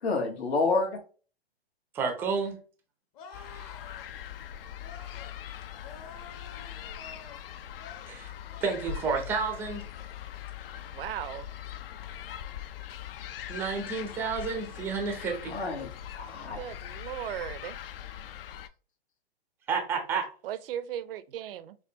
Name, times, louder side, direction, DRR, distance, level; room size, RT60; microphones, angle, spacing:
voice 1, 0.0-1.0 15.4-16.6, left 3 dB, 80° left, 1.3 m, -29 dB
voice 2, 1.9-2.5 8.1-8.3 8.6-9.8 13.5-15.6 19.7-20.3, right 5 dB, 5° right, 0.4 m, -30 dB
sound 1, 3.1-4.1 4.8-5.3 5.8-7.4 7.8-8.1 8.5-8.9 9.3-9.6, left 5 dB, 35° left, 0.8 m, -49 dB
sound 2, 3.3-18.7, left 10 dB, 65° left, 0.4 m, -41 dB
voice 3, 10.8-11.5 16.6-17.8 20.4-21.8, right 11 dB, 60° right, 0.5 m, -37 dB
4.7 x 2.2 x 2.7 m
hypercardioid pair, 135°, 31 cm